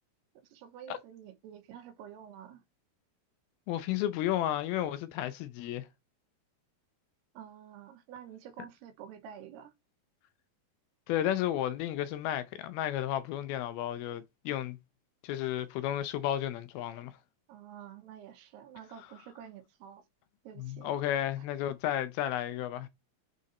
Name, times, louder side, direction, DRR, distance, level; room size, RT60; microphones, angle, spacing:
voice 1, 0.4-2.6 7.3-9.7 17.5-20.0 20.4-20.9 21.4-21.5, right 9 dB, 85° right, 3.0 m, -49 dB
voice 2, 3.7-5.9 11.1-14.8 15.2-17.1 20.6-22.9, left 12 dB, 80° left, 2.3 m, -32 dB
6.4 x 3.8 x 4.1 m
omnidirectional pair, 4.6 m